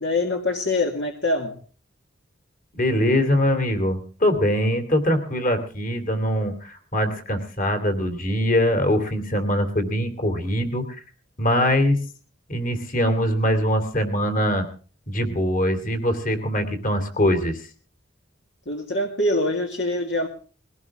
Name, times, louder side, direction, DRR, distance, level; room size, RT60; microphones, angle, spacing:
voice 1, 0.0-1.5 18.7-20.3, left 2 dB, 60° left, 2 dB, 2.0 m, -24 dB
voice 2, 2.7-11.0 11.4-12.0 12.5-14.6 15.1-17.7, equal, 40° left, 7 dB, 3.0 m, -22 dB
21.5 x 17.0 x 3.7 m, 0.38 s
head